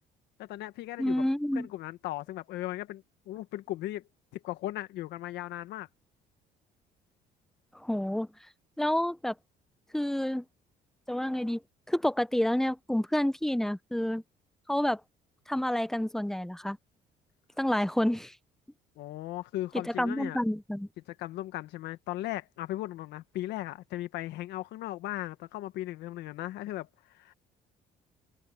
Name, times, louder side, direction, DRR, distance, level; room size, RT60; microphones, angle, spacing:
voice 1, 0.4-1.2 1.5-5.9 19.0-20.4 21.1-27.3, left 15 dB, 85° left, 1.5 m, -37 dB
voice 2, 1.0-1.7 7.7-8.3 8.8-9.3 9.9-10.4 11.1-11.6 11.9-14.2 14.7-15.0 15.5-16.8 17.6-18.3 20.0-20.9, left 1 dB, ahead, 0.7 m, -29 dB
cardioid pair, 110°, 17 cm